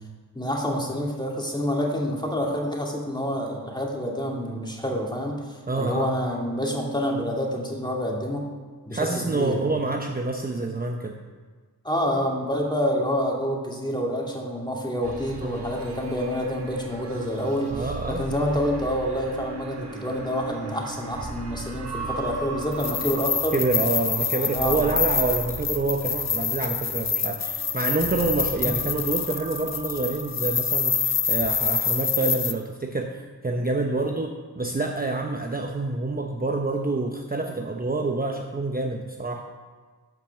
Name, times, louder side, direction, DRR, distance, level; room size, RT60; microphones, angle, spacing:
voice 1, 0.3-8.5 8.9-9.6 11.8-23.6 24.3-24.9 33.9-34.2, equal, 10° left, -1 dB, 2.3 m, -28 dB
voice 2, 5.7-6.1 8.9-11.2 15.4-15.7 17.7-18.2 23.5-34.3 34.6-39.4, right 3 dB, 20° right, 2 dB, 0.9 m, -27 dB
sound 1, 15.0-31.6, right 3 dB, 75° right, 1.6 m, -39 dB
sound 2, 22.7-32.5, left 6 dB, 40° left, 0.8 m, -26 dB
10.5 x 5.9 x 6.9 m, 1.4 s
cardioid pair, 65°, 40 cm